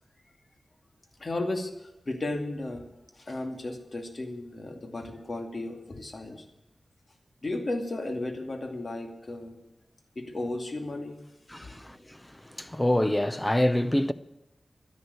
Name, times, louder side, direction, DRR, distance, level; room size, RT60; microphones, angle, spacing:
voice 1, 1.2-2.9 3.1-6.4 7.4-9.6 10.2-11.2, left 2 dB, 50° left, 2.4 m, -34 dB
voice 2, 11.5-14.1, left 1 dB, 15° left, 0.8 m, -26 dB
12.0 x 11.0 x 8.2 m
wide cardioid pair, 80°, 0 cm